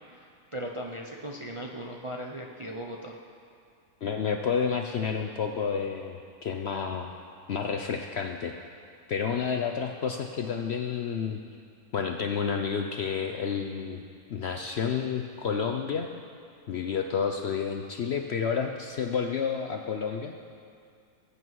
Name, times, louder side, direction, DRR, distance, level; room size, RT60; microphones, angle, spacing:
voice 1, 0.2-3.2, right 1 dB, 30° right, 0 dB, 0.6 m, -38 dB
voice 2, 4.0-7.1 7.5-8.5 9.1-11.4 11.9-16.1 16.7-20.4, left 6 dB, 60° left, 4 dB, 0.7 m, -30 dB
20.5 x 8.4 x 4.7 m, 2.3 s
omnidirectional pair, 1.6 m